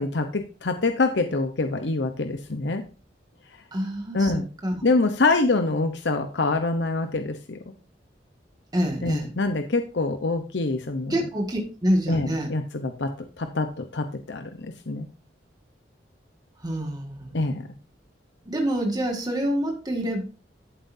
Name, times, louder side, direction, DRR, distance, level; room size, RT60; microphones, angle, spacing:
voice 1, 0.0-2.8 4.1-4.5 4.8-7.6 9.0-11.2 12.1-13.1 13.4-15.1 17.3-17.7, left 3 dB, 75° left, 7 dB, 0.9 m, -25 dB
voice 2, 3.7-4.8 8.7-9.3 11.1-12.5 16.6-17.3 18.5-20.2, equal, 25° right, 1 dB, 1.9 m, -27 dB
14.0 x 7.7 x 2.7 m, 0.33 s
head